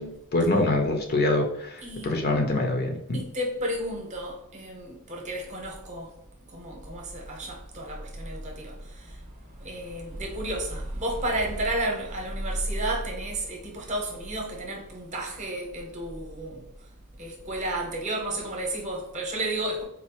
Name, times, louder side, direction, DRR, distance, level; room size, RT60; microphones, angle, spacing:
voice 1, 0.3-1.5 2.0-3.2, left 2 dB, 45° left, 0.6 m, -24 dB
voice 2, 1.8-2.3 3.1-6.1 6.5-9.2 9.6-16.6 17.2-19.8, right 1 dB, 35° right, 0.8 m, -32 dB
4.1 x 2.5 x 2.9 m
head